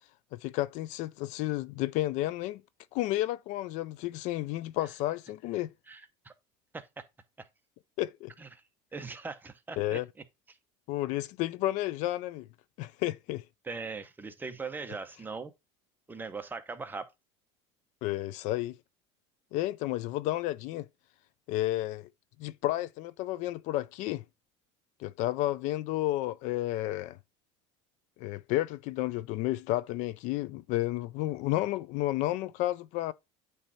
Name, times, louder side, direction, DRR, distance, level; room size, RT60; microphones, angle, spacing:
voice 1, 0.3-2.6 2.9-5.7 8.0-8.3 9.8-10.1 10.9-12.5 12.8-13.4 18.0-18.8 19.5-20.9 21.5-22.1 22.4-24.2 25.0-27.2 28.2-33.1, left 16 dB, 60° left, 0.4 m, -31 dB
voice 2, 5.9-6.3 6.7-7.1 7.4-7.5 8.4-8.6 8.9-10.0 10.5-10.6 13.6-15.5 16.1-17.1, right 4 dB, 15° right, 0.9 m, -40 dB
9.0 x 3.3 x 4.1 m
supercardioid pair, 130°, 14 cm